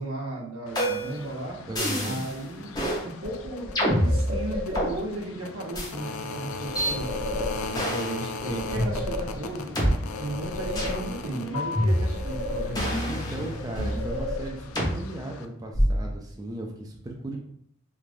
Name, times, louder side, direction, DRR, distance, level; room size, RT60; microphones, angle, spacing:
voice 1, 0.0-1.6 2.0-2.7 3.0-7.1 7.6-13.0, right 1 dB, 80° right, -2 dB, 0.9 m, -35 dB
sound 1, 0.7-15.4, left 4 dB, 70° left, 0.3 m, -38 dB
sound 2, 0.8-1.2 1.8-2.3 2.7-3.0 3.8-4.9 5.7-5.9 6.8-6.9 7.7-8.2 8.8-8.9 9.8-9.9 10.8-11.0 11.8-12.3 12.8-14.0 14.8-14.9 15.7-16.1, equal, 20° left, 0.8 m, -26 dB
voice 2, 1.7-2.2 13.0-17.4, right 1 dB, 20° right, 0 dB, 0.3 m, -36 dB
sound 3, 3.2-5.2 6.7-8.0 8.4-9.7 10.1-11.4 11.8-13.2 13.5-14.9, left 1 dB, 40° right, 0.8 m, -34 dB
3.2 x 2.5 x 2.5 m, 0.66 s
head